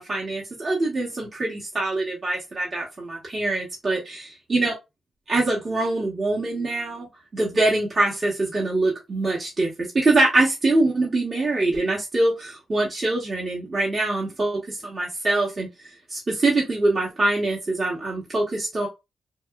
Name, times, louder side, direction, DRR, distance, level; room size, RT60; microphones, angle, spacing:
voice 1, 0.0-4.7 5.3-7.1 7.3-18.9, right 2 dB, 40° right, 0.9 m, -24 dB
2.9 x 2.3 x 2.2 m
cardioid pair, 70°, 0 cm